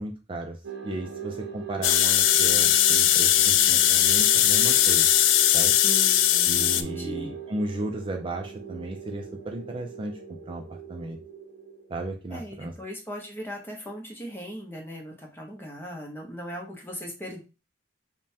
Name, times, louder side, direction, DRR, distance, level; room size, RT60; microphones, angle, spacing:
voice 1, 0.0-5.1 5.5-5.7 6.5-10.2 10.5-11.2 11.9-12.7, right 2 dB, 25° right, 3 dB, 0.4 m, -35 dB
sound 1, 0.6-12.4, right 7 dB, 65° right, 0.7 m, -40 dB
sound 2, 1.8-6.8, left 11 dB, 75° left, 0.3 m, -20 dB
voice 2, 5.8-7.3 12.3-17.4, equal, 10° left, 0 dB, 0.8 m, -38 dB
5.2 x 2.2 x 2.7 m, 0.32 s
head